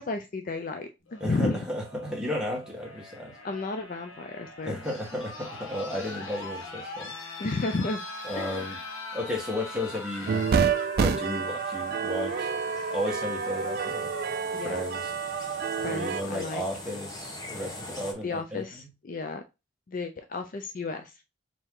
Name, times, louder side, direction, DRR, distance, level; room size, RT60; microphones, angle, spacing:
voice 1, 0.0-1.7 3.4-4.8 7.4-8.0 8.4-8.7 14.5-14.8 15.8-16.6 18.2-19.4 19.9-21.1, left 3 dB, 45° left, 0.4 m, -32 dB
sound 1, 1.1-15.0 16.3-16.4, left 2 dB, 80° left, 1.1 m, -42 dB
voice 2, 1.2-3.3 4.6-7.1 8.2-8.8 9.1-10.5 11.0-12.5 12.9-14.1 14.5-15.1 15.8-18.9, left 1 dB, 5° right, 1.4 m, -34 dB
sound 2, 9.5-18.1, left 1 dB, 20° left, 1.1 m, -45 dB
sound 3, 10.3-16.2, right 6 dB, 50° right, 0.3 m, -28 dB
4.5 x 2.8 x 3.7 m
head